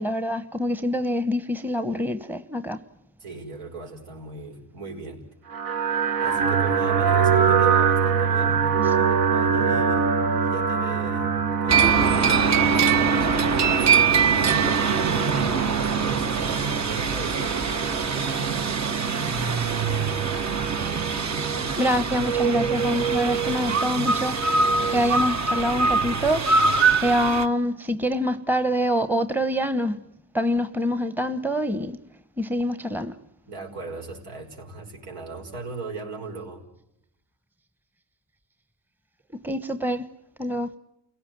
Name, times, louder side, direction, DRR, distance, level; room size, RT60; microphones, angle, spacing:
voice 1, 0.0-2.8 21.6-24.4 24.9-26.5 27.0-30.0 30.3-32.0 32.4-33.1 39.4-40.1 40.4-40.7, equal, 5° right, 1.0 m, -25 dB
voice 2, 3.2-5.2 6.2-11.3 11.6-18.4 33.5-36.6, right 3 dB, 80° right, 5.8 m, -38 dB
sound 1, 5.5-25.2, right 6 dB, 60° right, 1.4 m, -25 dB
sound 2, 11.7-27.5, right 5 dB, 45° right, 1.3 m, -23 dB
29.0 x 17.0 x 9.3 m
cardioid pair, 95°, 39 cm